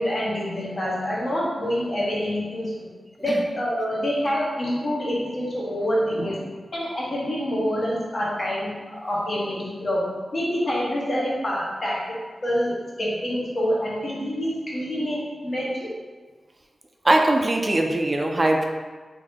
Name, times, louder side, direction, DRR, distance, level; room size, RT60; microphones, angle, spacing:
voice 1, 0.0-2.9 3.2-6.4 6.7-10.1 10.3-15.9, equal, 50° left, -6 dB, 1.1 m, -26 dB
voice 2, 17.0-18.6, right 1 dB, 30° right, 2 dB, 0.3 m, -21 dB
3.4 x 2.7 x 3.5 m, 1.4 s
wide cardioid pair, 80°, 0 cm